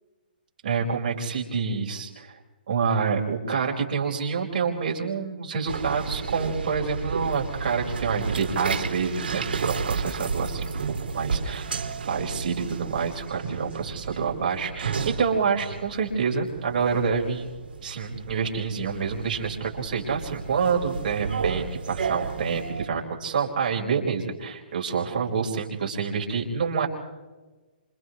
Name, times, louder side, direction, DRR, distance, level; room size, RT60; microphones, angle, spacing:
voice 1, 0.6-2.4 2.7-10.7 11.1-11.7 12.0-17.5 17.8-26.9, right 5 dB, 55° right, -1 dB, 4.9 m, -27 dB
sound 1, 5.7-22.9, right 5 dB, 75° right, 3.0 m, -32 dB
30.0 x 27.5 x 3.2 m, 1.2 s
hypercardioid pair, 150°, 5 cm